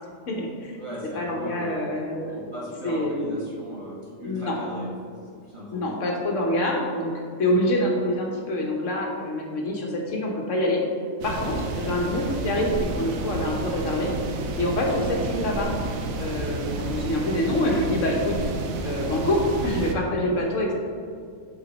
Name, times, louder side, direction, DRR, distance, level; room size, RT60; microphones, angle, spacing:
voice 1, 0.3-0.8 1.1-2.3 2.8-3.3 4.2-4.5 5.7-7.1 7.4-10.8 11.2-14.1 14.6-15.7 16.2-18.4 18.8-20.7, left 1 dB, 65° left, 0 dB, 1.2 m, -26 dB
voice 2, 0.8-1.9 2.2-5.1 5.4-6.0 13.1-13.2 16.8-17.0, equal, 25° right, -7 dB, 1.5 m, -38 dB
sound 1, 11.2-20.0, right 2 dB, 85° right, 1.1 m, -30 dB
7.1 x 4.2 x 4.0 m, 2.2 s
omnidirectional pair, 1.4 m